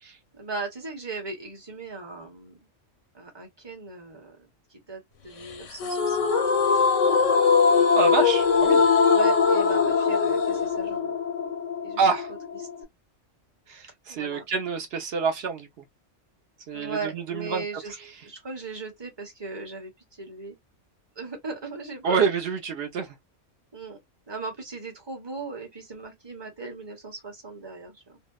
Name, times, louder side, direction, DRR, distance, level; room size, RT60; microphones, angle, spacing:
voice 1, 0.3-2.7 3.1-6.3 9.1-11.1 11.8-12.0 14.1-14.4 16.7-17.9 18.2-20.6 21.2-22.3 23.7-24.0 24.3-28.2, right 3 dB, 25° right, 0.8 m, -38 dB
sound 1, 5.8-12.8, left 5 dB, 85° left, 1.0 m, -21 dB
voice 2, 7.9-8.9 12.0-12.3 13.7-15.7 16.7-18.1 22.0-23.2, right 5 dB, 60° right, 0.9 m, -27 dB
2.7 x 2.1 x 2.3 m
omnidirectional pair, 1.3 m